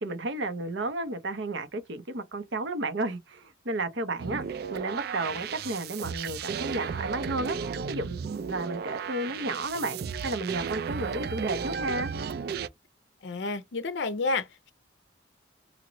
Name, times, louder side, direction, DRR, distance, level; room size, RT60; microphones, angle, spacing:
voice 1, 0.0-4.4 4.7-7.6 7.9-12.1, right 2 dB, 75° right, 0.8 m, -32 dB
sound 1, 4.2-12.7, right 6 dB, 55° right, 0.3 m, -34 dB
voice 2, 13.2-14.7, left 3 dB, 65° left, 0.5 m, -30 dB
3.0 x 2.9 x 2.6 m
head